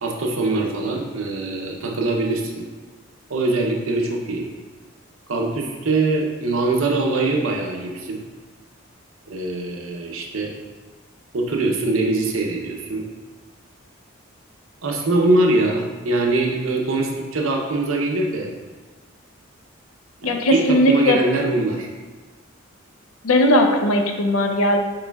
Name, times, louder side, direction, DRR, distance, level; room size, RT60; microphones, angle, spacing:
voice 1, 0.0-2.6 3.3-4.5 5.3-8.2 9.3-10.5 11.3-13.0 14.8-18.5 20.2-21.9, right 2 dB, 75° right, 1 dB, 0.7 m, -22 dB
voice 2, 20.2-21.2 23.2-24.8, left 1 dB, 90° left, 4 dB, 0.6 m, -18 dB
6.7 x 3.1 x 2.3 m, 1.3 s
head